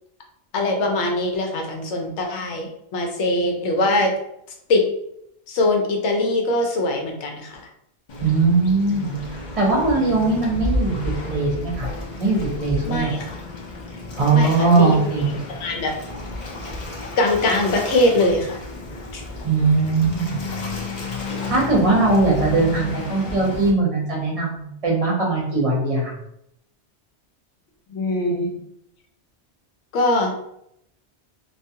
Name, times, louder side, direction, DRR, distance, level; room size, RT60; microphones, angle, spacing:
voice 1, 0.5-4.1 4.7-4.8 5.5-7.6 12.8-13.4 14.3-15.0 15.5-15.9 17.2-18.6 19.1-19.2 27.9-28.5 29.9-30.3, left 2 dB, 80° left, 1 dB, 0.9 m, -22 dB
Waves surf, 8.1-23.7, left 2 dB, 50° left, 0.6 m, -32 dB
voice 2, 8.2-11.0 11.2-11.9 12.2-13.1 14.2-15.3 19.4-20.4 21.5-26.1, right 3 dB, 35° right, -3 dB, 0.7 m, -20 dB
2.4 x 2.3 x 2.7 m, 0.75 s
omnidirectional pair, 1.2 m